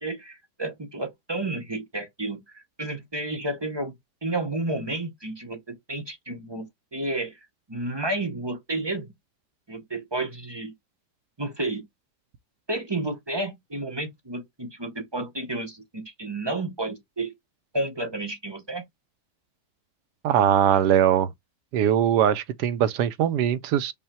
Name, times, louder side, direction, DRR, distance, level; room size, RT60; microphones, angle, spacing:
voice 1, 0.0-3.9 4.2-7.4 7.7-9.1 9.7-10.7 11.4-11.8 12.7-17.3 17.7-18.8, right 2 dB, 30° right, 0.5 m, -31 dB
voice 2, 20.2-21.3 21.7-23.9, right 10 dB, 80° right, 1.2 m, -21 dB
5.5 x 2.2 x 4.2 m
omnidirectional pair, 1.8 m